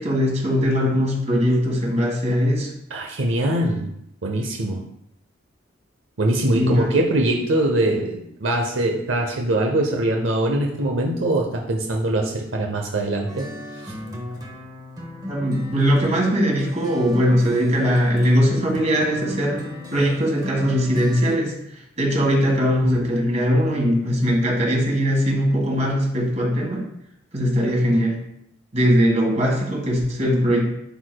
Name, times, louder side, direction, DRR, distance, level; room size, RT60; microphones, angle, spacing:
voice 1, 0.0-2.7 6.5-6.9 15.3-19.6 19.9-26.9 27.3-28.2 28.7-30.6, equal, 35° right, -1 dB, 1.7 m, -20 dB
voice 2, 2.9-3.9 4.2-4.8 6.2-13.5, right 1 dB, 80° right, 2 dB, 0.7 m, -22 dB
sound 1, 13.3-21.4, left 1 dB, 20° right, 0.9 m, -37 dB
10.0 x 4.6 x 2.3 m, 0.77 s
head